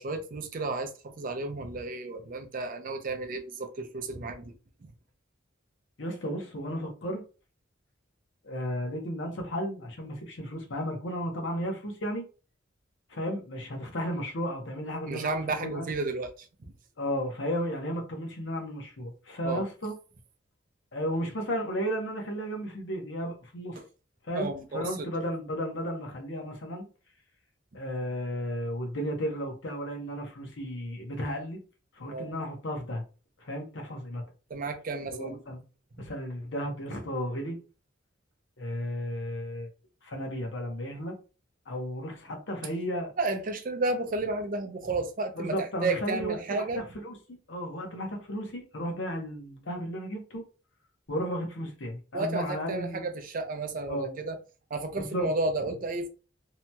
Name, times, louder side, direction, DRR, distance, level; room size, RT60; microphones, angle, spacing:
voice 1, 0.0-4.5 4.8-4.9 15.1-16.5 19.4-19.6 23.8-23.9 24.3-25.1 32.1-32.3 34.5-35.4 36.0-36.1 43.2-46.8 52.1-54.4 54.7-56.1, right 3 dB, 45° right, 0.5 m, -32 dB
voice 2, 6.0-7.2 8.4-12.2 13.1-15.3 15.6-15.9 17.0-19.9 20.9-23.8 24.2-26.8 27.7-31.6 31.9-33.0 33.4-34.2 35.1-35.6 36.0-37.6 38.6-39.7 40.0-41.1 41.7-43.1 45.4-50.4 51.1-53.0 53.8-54.2 55.0-55.3, equal, 70° left, 0.8 m, -34 dB
2.8 x 2.8 x 2.2 m
head